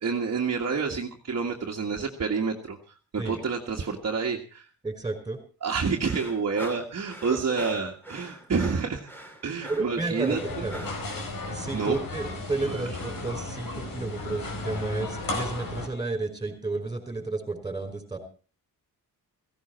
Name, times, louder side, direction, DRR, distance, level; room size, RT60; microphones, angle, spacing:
voice 1, 0.0-4.7 5.6-9.0 9.4-10.6 11.7-12.0 12.6-12.9, right 5 dB, 45° right, 0 dB, 1.9 m, -29 dB
voice 2, 4.8-5.4 9.7-10.8 11.5-18.2, right 3 dB, 10° right, 6 dB, 5.0 m, -32 dB
sound 1, 6.0-11.1, right 1 dB, 5° left, 2.8 m, -42 dB
sound 2, 10.3-15.9, left 2 dB, 60° left, 4.7 m, -35 dB
16.5 x 16.5 x 4.5 m, 0.37 s
cardioid pair, 115°, 38 cm